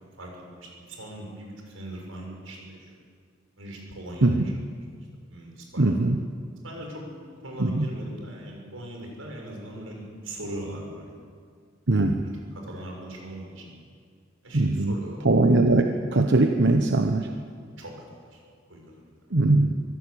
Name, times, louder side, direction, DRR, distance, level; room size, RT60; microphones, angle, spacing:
voice 1, 0.2-2.9 3.6-4.4 4.9-6.0 6.6-11.1 12.0-13.6 14.4-15.2 17.8-18.0 18.3-18.4 18.7-18.8, right 1 dB, 90° right, 1 dB, 6.2 m, -40 dB
voice 2, 5.8-6.2 7.6-7.9 11.9-12.2 14.5-14.9 15.2-17.3 19.3-19.7, right 2 dB, 60° right, 5 dB, 1.1 m, -21 dB
24.0 x 15.0 x 8.6 m, 2.1 s
head